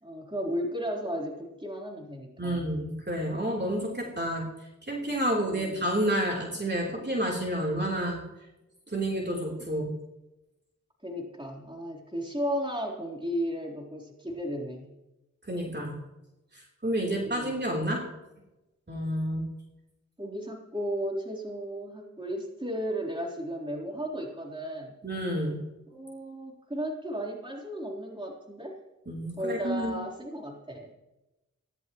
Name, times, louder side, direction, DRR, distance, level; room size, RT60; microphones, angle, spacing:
voice 1, 0.0-2.7 5.4-5.9 11.0-14.9 17.0-17.5 20.2-24.9 25.9-28.8 29.4-30.9, equal, 15° right, -2 dB, 3.9 m, -34 dB
voice 2, 2.4-4.5 4.9-8.2 8.9-9.9 15.5-16.0 16.8-18.0 18.9-19.5 25.0-25.6 29.1-30.0, right 1 dB, 30° right, -2 dB, 3.8 m, -29 dB
18.5 x 16.5 x 3.2 m, 0.99 s
cardioid pair, 40°, 33 cm